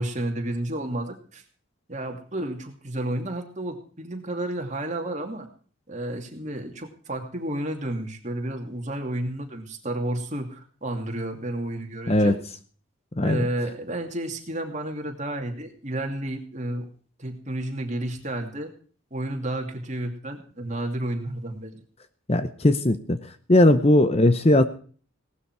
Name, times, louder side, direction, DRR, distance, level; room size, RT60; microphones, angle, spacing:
voice 1, 0.0-1.4 1.9-5.5 5.9-12.4 13.2-16.8 17.2-18.7 19.1-21.8, right 1 dB, 35° right, 3 dB, 2.6 m, -31 dB
voice 2, 22.3-23.2 23.5-24.6, left 1 dB, 30° left, 11 dB, 0.8 m, -18 dB
18.0 x 12.5 x 4.7 m, 0.43 s
head